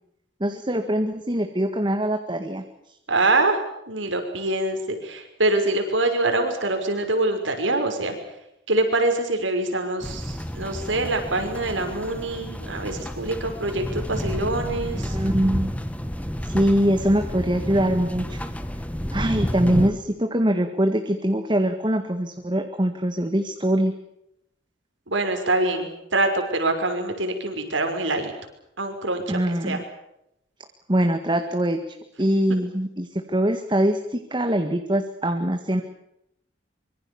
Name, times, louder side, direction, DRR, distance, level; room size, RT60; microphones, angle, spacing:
voice 1, 0.4-2.6 15.0-15.7 16.4-18.4 19.1-23.9 29.3-29.8 30.9-31.8 32.2-35.8, right 1 dB, 25° right, 5 dB, 1.8 m, -23 dB
voice 2, 3.1-3.6 3.9-8.2 8.7-15.2 25.1-28.3 28.8-29.8, right 2 dB, 80° right, 5 dB, 5.9 m, -24 dB
sound 1, 10.0-19.9, equal, 5° left, 1.7 m, -30 dB
25.0 x 24.5 x 7.1 m, 0.80 s
head